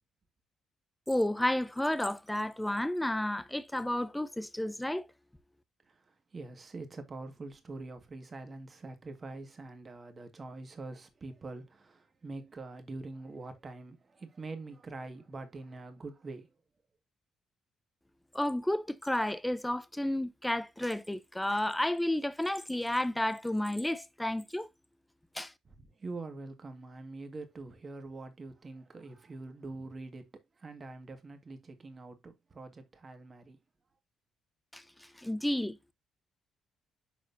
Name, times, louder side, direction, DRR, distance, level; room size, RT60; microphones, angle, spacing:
voice 1, 1.1-5.1 18.3-24.7 25.3-25.5 34.7-35.9, left 1 dB, 5° left, 0.7 m, -32 dB
voice 2, 5.9-16.5 25.7-30.3 30.6-33.6, right 3 dB, 35° right, 1.8 m, -44 dB
11.5 x 4.2 x 2.7 m
cardioid pair, 90°, 0 cm